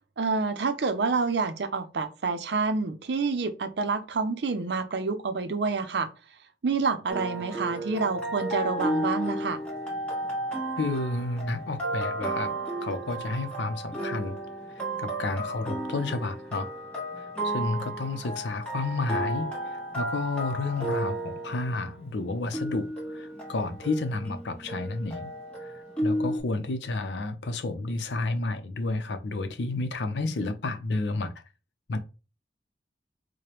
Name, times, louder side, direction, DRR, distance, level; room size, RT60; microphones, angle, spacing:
voice 1, 0.2-6.1 6.6-9.6, right 4 dB, 70° right, 0.5 m, -28 dB
sound 1, 7.1-26.4, right 1 dB, 5° left, 1.1 m, -33 dB
voice 2, 10.8-12.6 12.8-14.4 15.0-16.7 17.2-25.3 25.6-31.3 31.9-32.0, left 3 dB, 80° left, 0.6 m, -31 dB
4.8 x 2.1 x 2.9 m
head